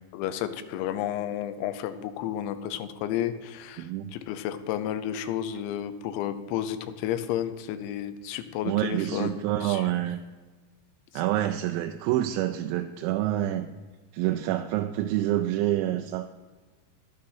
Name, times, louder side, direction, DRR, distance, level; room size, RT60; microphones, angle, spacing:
voice 1, 0.1-9.9, left 10 dB, 90° left, 10 dB, 3.1 m, -32 dB
voice 2, 3.8-4.1 8.7-10.2 11.1-13.7 14.1-16.3, right 13 dB, 90° right, 6 dB, 2.9 m, -27 dB
11.5 x 8.8 x 5.5 m, 1.4 s
omnidirectional pair, 5.2 m